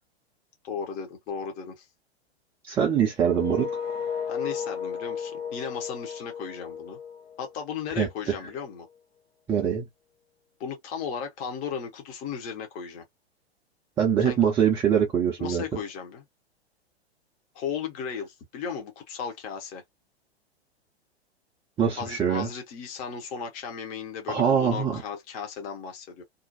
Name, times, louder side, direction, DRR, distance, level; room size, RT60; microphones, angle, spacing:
voice 1, 0.6-1.9 4.3-7.0 7.4-8.9 10.6-13.0 14.2-14.4 15.4-16.2 17.5-19.8 21.9-26.2, left 6 dB, 25° left, 0.7 m, -35 dB
voice 2, 2.7-3.7 8.0-8.4 9.5-9.9 14.0-15.6 21.8-22.5 24.3-25.0, right 8 dB, 10° right, 0.3 m, -23 dB
sound 1, 3.2-8.1, left 7 dB, 65° left, 0.5 m, -34 dB
2.5 x 2.2 x 2.5 m
figure-of-eight pair, 105°, 33 cm